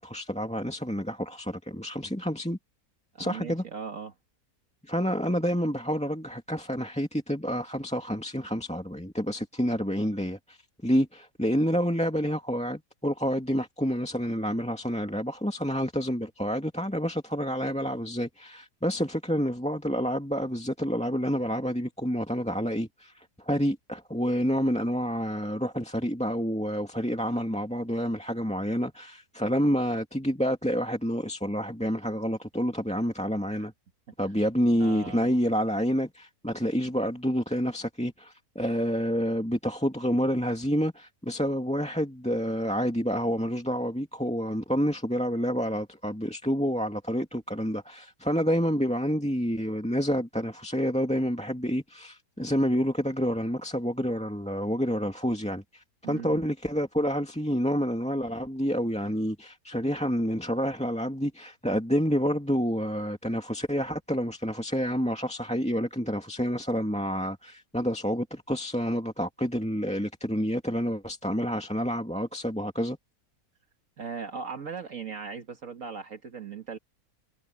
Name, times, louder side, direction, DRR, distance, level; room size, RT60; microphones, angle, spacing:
voice 1, 0.0-2.6 3.2-3.6 4.9-10.6 10.8-33.7 34.2-73.0, equal, 5° left, 2.3 m, -28 dB
voice 2, 3.1-4.1 34.8-35.3 56.0-56.4 74.0-76.8, right 5 dB, 55° right, 1.8 m, -38 dB
omnidirectional pair, 1.7 m